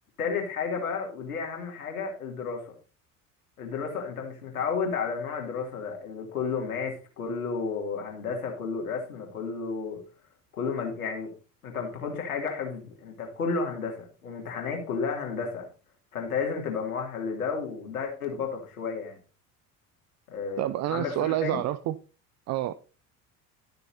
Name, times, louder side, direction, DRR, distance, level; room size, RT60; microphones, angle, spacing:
voice 1, 0.2-2.7 3.6-10.0 10.6-11.3 11.6-15.7 16.1-19.2 20.3-21.6, left 5 dB, 75° left, 2.9 m, -32 dB
voice 2, 20.6-22.0 22.5-22.7, right 14 dB, 40° right, 0.6 m, -28 dB
12.5 x 6.7 x 4.1 m
figure-of-eight pair, 60°, 43 cm